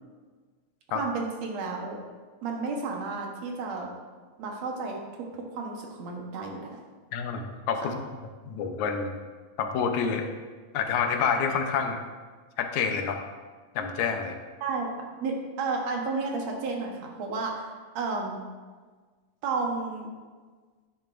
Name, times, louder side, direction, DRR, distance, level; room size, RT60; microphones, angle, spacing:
voice 1, 0.9-2.0 2.4-3.9 4.4-6.8 14.6-14.9 15.2-17.7 18.0-18.4 19.4-20.1, right 4 dB, 70° right, 0 dB, 2.3 m, -32 dB
voice 2, 7.1-8.1 8.5-9.1 9.6-10.3 10.7-12.0 12.6-13.2 13.8-14.4, left 6 dB, 80° left, 5 dB, 2.2 m, -28 dB
10.5 x 9.7 x 2.5 m, 1.5 s
omnidirectional pair, 3.3 m